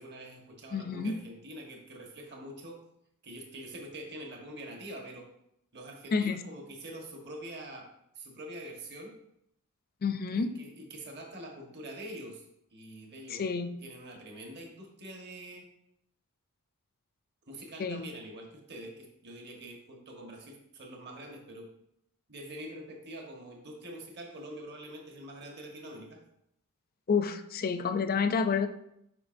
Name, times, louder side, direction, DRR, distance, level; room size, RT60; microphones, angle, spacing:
voice 1, 0.0-2.8 3.2-5.3 5.7-7.9 8.1-9.1 10.3-12.4 12.7-13.4 13.8-15.7 17.5-21.7 22.3-26.2, right 1 dB, 50° right, 1 dB, 1.3 m, -45 dB
voice 2, 0.7-1.1 6.1-6.4 10.0-10.5 13.3-13.7 17.8-18.0 27.1-28.7, left 5 dB, 40° left, 9 dB, 0.4 m, -29 dB
8.0 x 5.7 x 2.6 m, 0.77 s
head